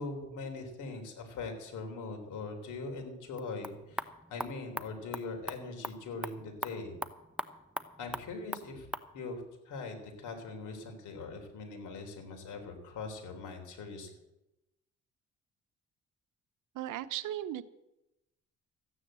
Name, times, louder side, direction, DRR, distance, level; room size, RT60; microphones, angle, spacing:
voice 1, 0.0-7.0 8.0-8.9 9.1-14.1, left 3 dB, 80° left, 4 dB, 3.7 m, -41 dB
sound 1, 3.3-9.1, right 1 dB, 5° right, 0.7 m, -42 dB
voice 2, 16.7-17.6, right 12 dB, 85° right, 13 dB, 0.9 m, -36 dB
14.5 x 9.8 x 7.6 m, 0.93 s
cardioid pair, 90°, 30 cm